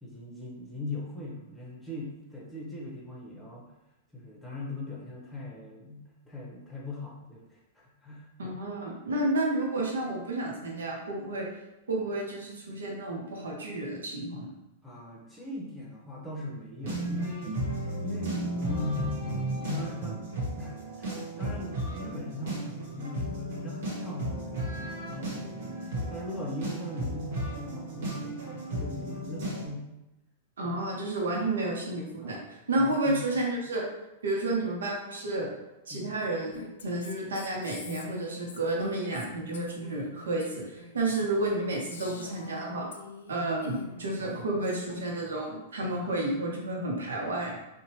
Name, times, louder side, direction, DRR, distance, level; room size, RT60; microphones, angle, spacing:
voice 1, 0.0-3.7 4.1-8.5 14.8-17.5 18.0-19.0 19.5-30.0 30.6-30.8 32.2-32.4 32.8-33.2 35.9-36.2 43.3-43.5 44.2-44.3 45.9-46.1, left 1 dB, 5° left, -4 dB, 0.9 m, -40 dB
voice 2, 8.4-11.5 11.9-14.5 30.6-33.8 34.2-35.5 35.9-42.9 43.3-47.6, right 2 dB, 85° right, -1 dB, 0.7 m, -31 dB
sound 1, 16.8-29.6, right 1 dB, 65° right, 1.2 m, -34 dB
Female speech woman speaking, 36.5-43.4 43.6-44.9, left 4 dB, 80° left, 0.4 m, -46 dB
2.8 x 2.2 x 2.9 m, 0.95 s
hypercardioid pair, 115°, 0 cm